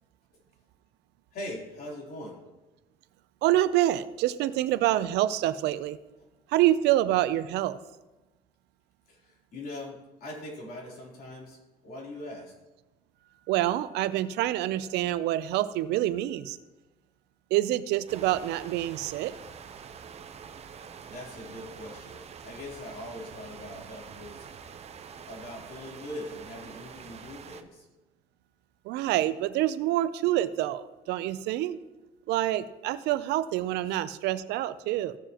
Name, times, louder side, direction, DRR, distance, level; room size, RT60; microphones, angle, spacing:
voice 1, 1.3-2.4 9.1-11.6 11.8-12.5 21.1-24.5 25.3-27.9, left 1 dB, 60° left, -3 dB, 3.4 m, -41 dB
voice 2, 3.4-6.0 6.5-7.8 13.5-16.6 17.5-19.3 28.9-31.8 32.3-35.2, right 14 dB, 85° right, 15 dB, 0.5 m, -26 dB
sound 1, 18.1-27.6, right 7 dB, 40° right, 0.7 m, -46 dB
16.0 x 6.9 x 2.9 m, 1.1 s
cardioid pair, 110°, 17 cm